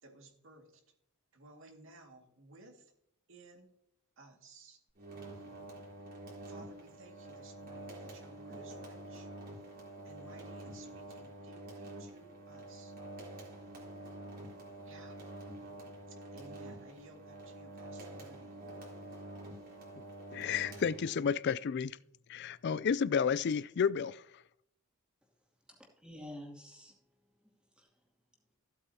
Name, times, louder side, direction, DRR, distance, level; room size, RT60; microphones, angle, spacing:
voice 1, 0.0-0.8 1.3-2.9 3.3-3.7 4.2-4.8 6.5-9.3 10.0-13.0 14.8-15.2 16.1-18.6, right 2 dB, 60° right, 2.1 m, -57 dB
sound 1, 5.0-21.4, right 1 dB, 40° right, 3.6 m, -47 dB
voice 2, 20.3-22.0 22.3-24.2, left 6 dB, 50° left, 0.3 m, -31 dB
voice 3, 25.7-27.0 27.4-27.9, left 1 dB, 5° right, 2.6 m, -50 dB
15.5 x 8.2 x 2.8 m
head